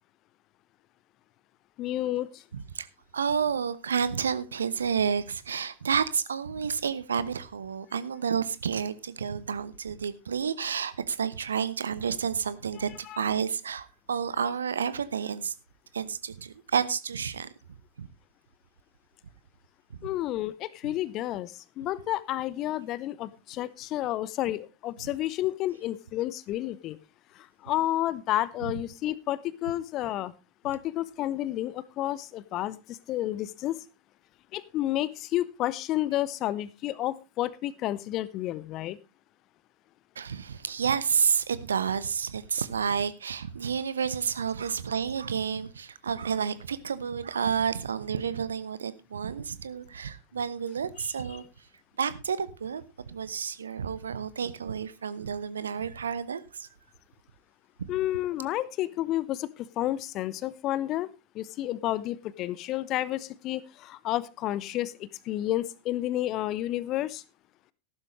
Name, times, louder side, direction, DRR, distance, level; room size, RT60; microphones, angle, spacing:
voice 1, 1.8-2.4 13.0-13.2 20.0-27.0 27.3-30.3 30.6-33.8 34.5-39.0 57.9-67.2, left 14 dB, 35° left, 0.8 m, -31 dB
voice 2, 2.5-2.9 3.1-15.5 15.9-17.5 18.0-18.1 20.0-20.1 28.6-28.7 40.2-51.4 52.0-56.7 57.8-57.9, right 7 dB, 70° right, 0.9 m, -30 dB
14.0 x 12.0 x 3.2 m
figure-of-eight pair, 90°, 0 cm